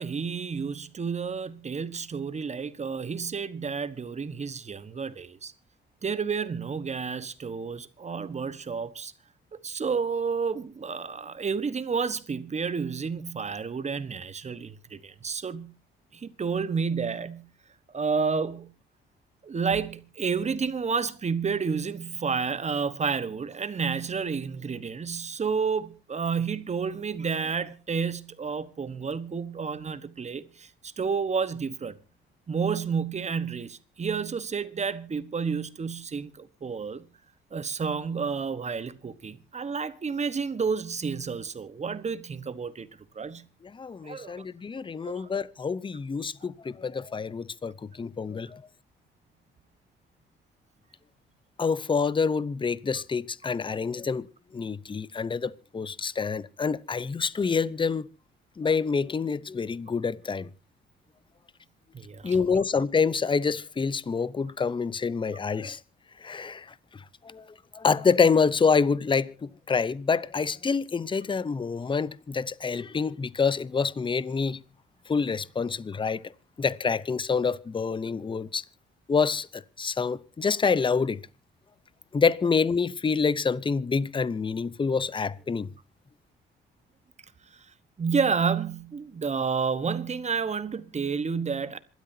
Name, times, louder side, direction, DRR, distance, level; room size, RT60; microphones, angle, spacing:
voice 1, 0.0-5.5 6.0-9.1 9.5-15.7 16.1-17.5 17.9-18.7 19.4-32.0 32.5-37.0 37.5-42.9 43.1-43.4 44.0-44.4 45.0-45.3 61.9-62.6 88.0-91.8, right 5 dB, 35° right, 1.3 m, -30 dB
voice 2, 43.7-48.6 51.6-54.3 54.5-58.1 58.6-60.5 62.2-65.8 66.2-66.7 66.9-67.4 67.7-74.6 75.1-76.2 76.6-78.6 79.1-81.2 82.1-85.7, left 5 dB, 25° left, 0.8 m, -27 dB
26.5 x 12.5 x 2.8 m
cardioid pair, 90°, 20 cm